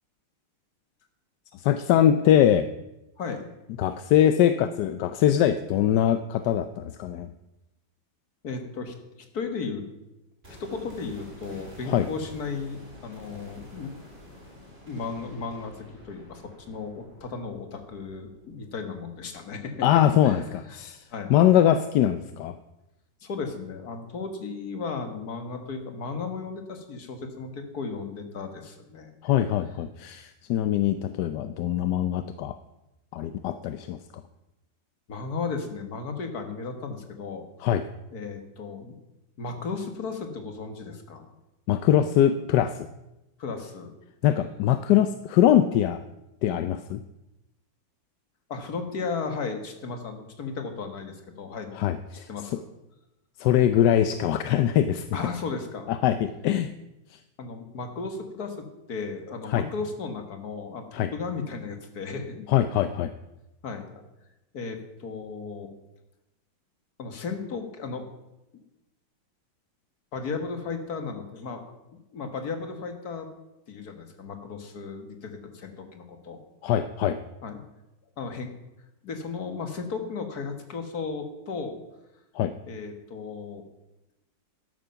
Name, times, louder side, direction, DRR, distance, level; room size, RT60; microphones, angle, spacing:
voice 1, 1.6-2.7 3.8-7.3 11.9-12.1 19.8-21.0 21.3-22.5 29.2-32.6 33.1-34.0 37.6-37.8 41.7-42.9 44.2-46.0 46.4-47.0 51.7-52.3 53.4-55.1 55.9-56.7 59.5-59.6 60.9-61.1 62.5-63.1 76.6-77.2 82.3-82.5, left 11 dB, 70° left, 11 dB, 1.1 m, -22 dB
voice 2, 8.4-9.8 10.5-13.9 14.9-20.4 21.1-21.4 23.2-29.1 35.1-37.5 38.1-39.0 39.4-41.3 43.4-43.9 48.5-51.8 52.3-52.7 55.1-55.9 57.4-62.5 63.6-63.9 64.5-65.7 67.0-68.1 70.1-71.6 72.1-73.3 73.7-76.4 77.4-77.6 78.2-78.5 79.0-81.8 82.7-83.6, left 4 dB, 55° left, 6 dB, 2.0 m, -35 dB
sound 1, 10.4-20.4 20.7-20.8, left 1 dB, 30° right, 3.9 m, -49 dB
13.0 x 11.0 x 5.7 m, 0.96 s
omnidirectional pair, 2.1 m